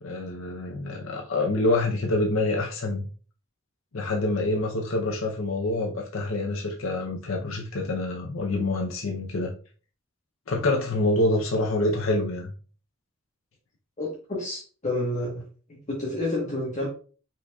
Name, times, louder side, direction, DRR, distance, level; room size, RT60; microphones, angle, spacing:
voice 1, 0.0-3.0 3.9-9.5 10.5-12.5, left 2 dB, 75° left, 2 dB, 0.7 m, -26 dB
voice 2, 14.0-15.4 15.9-16.9, left 1 dB, 35° left, -4 dB, 1.2 m, -29 dB
5.5 x 4.1 x 2.3 m, 0.39 s
head